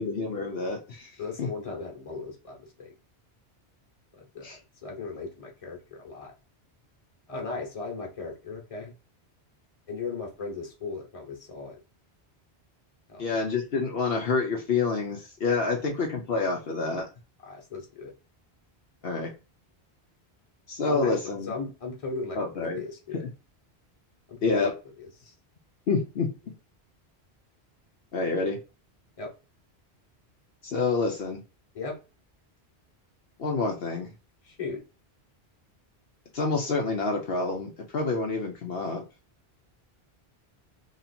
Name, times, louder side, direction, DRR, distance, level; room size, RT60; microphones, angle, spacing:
voice 1, 0.0-1.5 4.4-4.6 13.2-17.1 19.0-19.3 20.7-21.5 22.4-22.8 23.1-23.3 24.4-24.7 25.9-26.3 28.1-28.6 30.6-31.4 33.4-34.1 36.3-39.0, left 4 dB, 65° left, 0 dB, 0.9 m, -28 dB
voice 2, 1.2-2.9 4.2-6.3 7.3-8.9 9.9-11.8 13.1-13.4 17.5-18.1 20.8-23.2 24.3-24.7 25.0-25.3 29.2-29.3 31.7-32.0 34.4-34.8, left 4 dB, 35° left, 0 dB, 1.2 m, -37 dB
3.1 x 2.8 x 4.2 m, 0.31 s
omnidirectional pair, 1.1 m